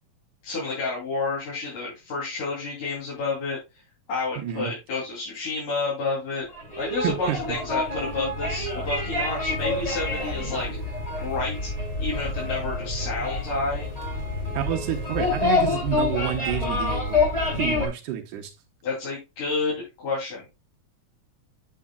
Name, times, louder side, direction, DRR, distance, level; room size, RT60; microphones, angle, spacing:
voice 1, 0.4-3.6 4.1-6.5 6.8-10.7 11.2-11.7 12.0-13.9 18.8-20.4, left 3 dB, 90° left, -6 dB, 4.5 m, -30 dB
voice 2, 4.4-4.7 7.0-7.6 14.5-17.3 17.6-18.5, right 11 dB, 90° right, 2 dB, 2.5 m, -29 dB
sound 1, 6.5-17.9, left 3 dB, 10° left, 2.6 m, -27 dB
8.4 x 7.6 x 2.2 m, 0.24 s
omnidirectional pair, 3.5 m